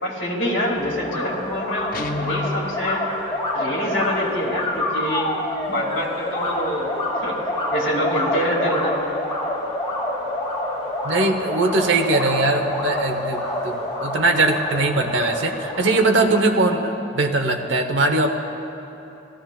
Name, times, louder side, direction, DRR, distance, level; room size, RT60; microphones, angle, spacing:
voice 1, 0.0-3.0 3.5-5.3 5.7-6.9 7.2-7.4 7.7-9.0, equal, 70° left, -4 dB, 2.2 m, -25 dB
sound 1, 0.8-16.4, left 1 dB, 25° left, 2.2 m, -27 dB
Guitar, 1.9-2.7, left 2 dB, 45° left, 0.6 m, -28 dB
voice 2, 11.0-18.3, right 2 dB, 75° right, 4 dB, 0.9 m, -21 dB
18.0 x 14.0 x 2.3 m, 2.8 s
head